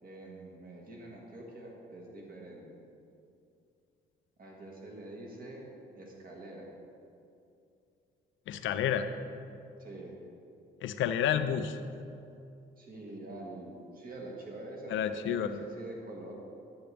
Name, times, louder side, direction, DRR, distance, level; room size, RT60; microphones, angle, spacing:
voice 1, 0.0-2.7 4.4-5.7 5.9-6.7 9.8-10.2 12.8-16.3, right 2 dB, 45° right, -1 dB, 1.8 m, -45 dB
voice 2, 8.5-9.1 10.8-11.8 14.9-15.5, left 9 dB, 75° left, 10 dB, 0.6 m, -30 dB
10.5 x 7.9 x 3.4 m, 2.6 s
cardioid pair, 90°, 20 cm